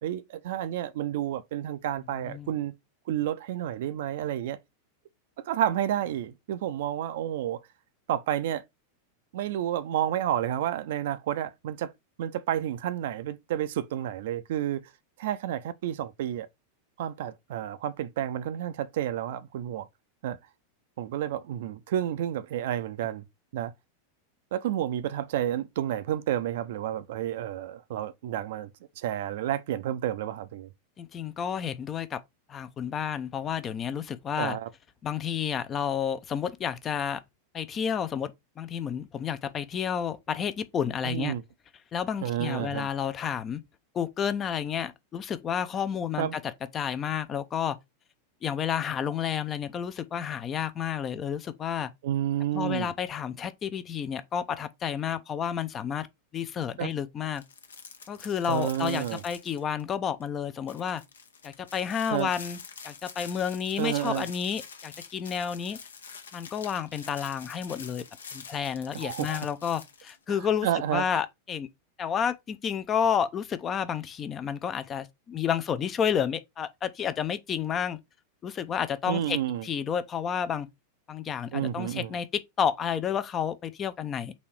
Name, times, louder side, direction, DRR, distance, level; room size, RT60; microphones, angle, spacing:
voice 1, 0.0-2.7 3.1-4.6 5.4-7.6 8.1-8.6 9.3-11.9 12.2-14.9 15.2-16.5 17.0-19.9 20.2-20.4 21.0-23.2 23.5-23.7 24.5-28.7 29.0-30.7 34.4-34.7 41.0-41.4 42.2-42.9 46.2-46.4 52.0-52.9 56.8-56.9 58.5-59.2 62.1-62.3 63.8-64.3 68.9-69.5 70.3-71.2 79.1-79.7 81.5-82.1, right 11 dB, 55° right, 0.4 m, -30 dB
voice 2, 31.0-32.2 32.5-34.6 35.0-37.2 37.5-41.3 41.9-43.6 43.9-46.4 46.7-47.8 48.4-51.9 52.5-56.1 56.3-57.4 58.1-61.0 61.4-62.6 62.8-65.8 66.3-68.0 68.3-71.7 72.0-78.0 78.4-80.7 81.1-84.3, left 8 dB, 25° left, 0.5 m, -30 dB
sound 1, 57.3-59.9 60.2-60.3 60.7-70.2, left 5 dB, 70° left, 0.7 m, -46 dB
4.2 x 2.7 x 4.5 m
figure-of-eight pair, 90°, 0 cm